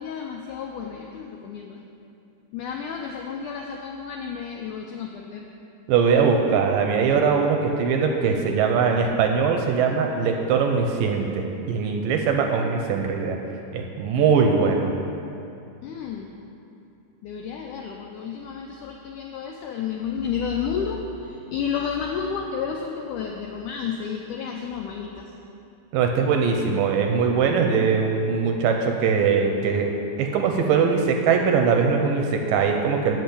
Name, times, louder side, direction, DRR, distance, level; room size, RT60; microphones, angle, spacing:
voice 1, 0.0-1.8 2.5-5.5 15.8-16.3 17.2-25.3, left 6 dB, 90° left, 1 dB, 1.8 m, -31 dB
voice 2, 5.9-13.4 13.7-14.9 25.9-29.9 30.2-33.2, right 5 dB, 80° right, 3 dB, 2.1 m, -21 dB
8.1 x 6.9 x 8.4 m, 2.7 s
omnidirectional pair, 4.3 m